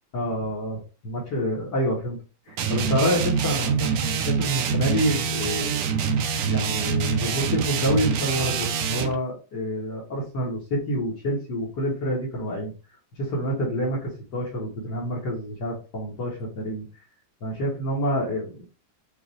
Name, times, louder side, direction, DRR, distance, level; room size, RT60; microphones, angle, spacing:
voice 1, 0.1-2.2 2.5-5.8 6.5-12.7 13.2-16.9 17.4-18.7, equal, 60° left, -3 dB, 1.9 m, -27 dB
sound 1, 2.6-9.2, right 6 dB, 90° right, 0.7 m, -25 dB
5.4 x 2.7 x 3.1 m, 0.33 s
omnidirectional pair, 2.3 m